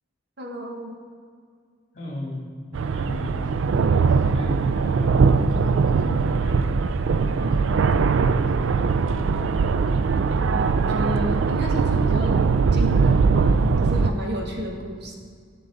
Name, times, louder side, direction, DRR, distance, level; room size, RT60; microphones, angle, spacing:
voice 1, 0.4-1.0 7.4-7.8 10.5-12.4 12.7-15.2, equal, 55° right, 1 dB, 1.2 m, -32 dB
voice 2, 1.9-2.5 2.9-3.5 4.1-7.5 7.8-7.9 8.3-9.3, left 1 dB, 40° left, -3 dB, 2.6 m, -37 dB
sound 1, 2.7-14.1, right 5 dB, 75° right, 0.4 m, -21 dB
11.5 x 6.8 x 3.9 m, 2.1 s
head